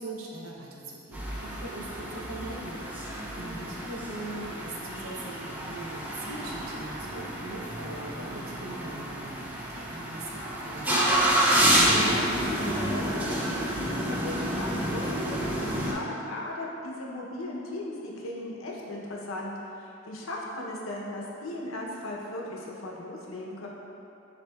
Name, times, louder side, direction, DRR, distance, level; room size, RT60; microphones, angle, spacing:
voice 1, 0.0-11.3, right 2 dB, 85° right, -3 dB, 0.7 m, -41 dB
sound 1, 1.1-15.9, right 1 dB, 10° right, 0.4 m, -29 dB
voice 2, 3.3-3.7 11.6-23.7, left 1 dB, 75° left, -2 dB, 0.6 m, -37 dB
7.2 x 2.7 x 2.3 m, 2.9 s
head